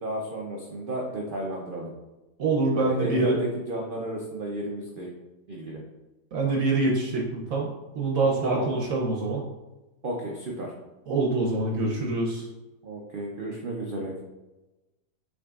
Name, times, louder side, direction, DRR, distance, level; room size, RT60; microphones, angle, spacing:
voice 1, 0.0-1.9 2.7-5.1 5.5-5.8 8.4-8.7 10.0-10.7 12.8-14.2, right 1 dB, 90° right, -1 dB, 0.4 m, -32 dB
voice 2, 2.4-3.4 6.3-9.5 11.1-12.5, right 3 dB, 65° right, -2 dB, 1.0 m, -25 dB
6.0 x 3.6 x 2.3 m, 1.1 s
omnidirectional pair, 1.7 m